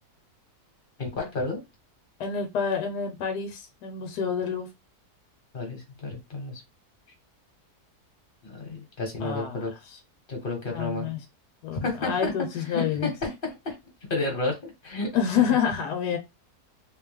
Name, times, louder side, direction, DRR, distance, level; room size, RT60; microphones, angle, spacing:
voice 1, 1.0-1.6 5.5-6.6 8.4-9.7 10.3-11.1 11.8-12.3 12.7-13.8 14.1-15.1 15.4-15.5, left 2 dB, 35° left, 1.6 m, -31 dB
voice 2, 2.2-4.7 9.2-9.7 10.7-11.2 11.6-13.1 15.1-16.2, left 7 dB, 75° left, 1.3 m, -28 dB
3.2 x 3.0 x 3.5 m
omnidirectional pair, 1.7 m